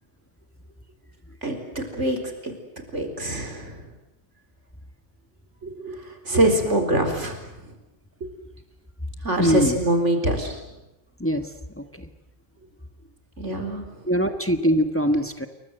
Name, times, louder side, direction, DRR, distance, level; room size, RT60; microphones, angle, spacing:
voice 1, 1.4-2.2 2.4-2.5 2.9-3.8 5.6-7.4 9.2-10.6 13.4-13.8, right 1 dB, 80° right, 5 dB, 4.5 m, -24 dB
voice 2, 9.4-9.8 11.2-11.5 11.8-12.1 14.1-15.5, equal, 10° left, 7 dB, 1.5 m, -22 dB
29.0 x 23.0 x 8.0 m, 0.93 s
omnidirectional pair, 1.2 m